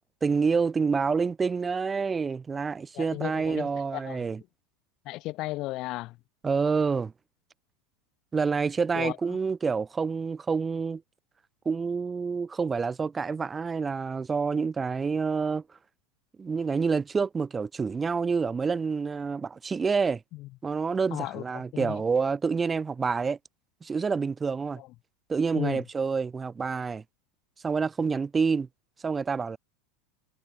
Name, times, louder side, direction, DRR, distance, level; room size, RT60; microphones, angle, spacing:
voice 1, 0.2-4.4 6.4-7.1 8.3-11.0 11.6-15.6 16.4-20.2 20.6-23.4 23.8-24.8 25.3-27.0 27.6-28.7 29.0-29.6, right 5 dB, 15° right, 6.4 m, -28 dB
voice 2, 3.0-3.7 4.0-4.2 5.1-6.1 9.0-9.1 21.1-21.4 21.8-21.9 25.6-25.8, left 18 dB, 45° left, 1.3 m, -34 dB
supercardioid pair, 135°, 0 cm